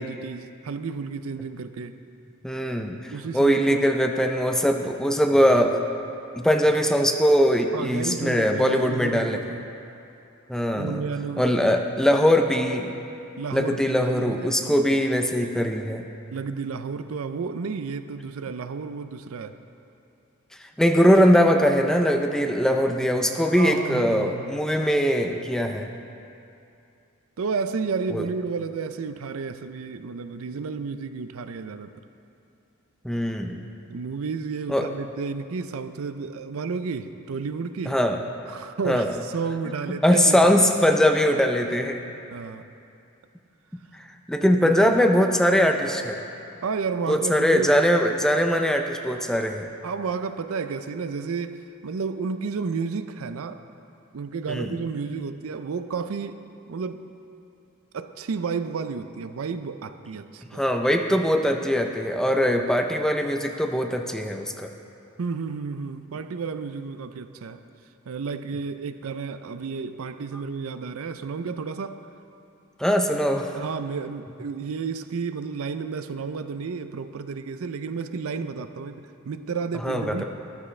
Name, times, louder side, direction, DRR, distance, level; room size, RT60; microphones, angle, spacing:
voice 1, 0.0-1.9 3.1-3.9 7.7-9.7 10.7-11.4 13.4-15.0 16.3-19.5 23.5-24.6 27.4-31.9 33.9-38.0 38.5-40.7 42.3-42.6 44.5-44.7 46.6-47.7 49.8-53.6 54.1-56.4 56.7-57.0 57.9-60.6 65.2-67.6 68.1-72.0 73.5-80.2, right 5 dB, 75° right, 10 dB, 0.5 m, -32 dB
voice 2, 2.4-5.8 6.4-9.4 10.5-11.0 11.4-12.9 13.5-16.1 20.8-25.9 28.1-28.2 33.0-33.6 34.7-34.9 37.9-38.2 38.9-39.1 40.0-42.0 44.3-46.2 47.1-49.7 54.5-54.8 60.5-64.7 72.8-73.5 79.8-80.2, equal, 5° left, 4 dB, 0.5 m, -21 dB
13.5 x 12.5 x 3.2 m, 2.7 s
head